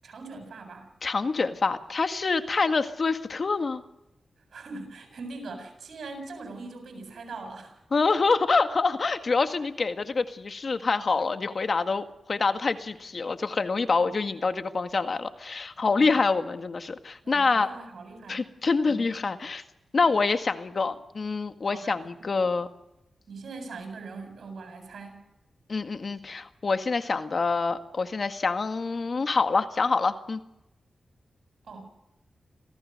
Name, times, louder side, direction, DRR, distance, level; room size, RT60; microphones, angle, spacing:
voice 1, 0.0-0.9 4.5-7.7 13.9-14.1 15.9-16.1 17.2-18.4 18.8-19.1 20.0-20.2 21.7-22.0 23.3-25.2 31.7-31.9, right 3 dB, 80° right, 4 dB, 7.7 m, -41 dB
voice 2, 1.0-3.8 7.9-17.7 18.3-19.6 19.9-22.7 25.7-30.4, left 4 dB, 55° left, 8 dB, 1.9 m, -26 dB
26.5 x 17.0 x 6.7 m, 0.91 s
cardioid pair, 55°, 0 cm